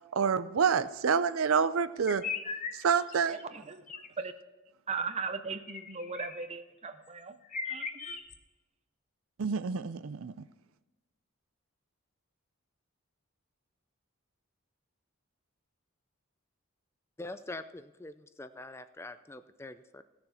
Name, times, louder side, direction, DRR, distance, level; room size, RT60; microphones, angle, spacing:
voice 1, 0.1-2.2 2.8-3.3 9.4-10.3, right 6 dB, 75° right, 14 dB, 0.5 m, -27 dB
sound 1, 2.1-3.4 3.9-4.1 5.7-6.5 7.1-7.2 7.4-8.4, left 5 dB, 40° left, 1.0 m, -39 dB
voice 2, 3.3-3.8 4.2-4.3 4.9-7.4 7.6-8.2, right 5 dB, 30° right, 11 dB, 0.7 m, -38 dB
voice 3, 17.2-20.0, left 2 dB, 10° left, 11 dB, 0.4 m, -44 dB
16.0 x 7.0 x 5.7 m, 1.1 s
head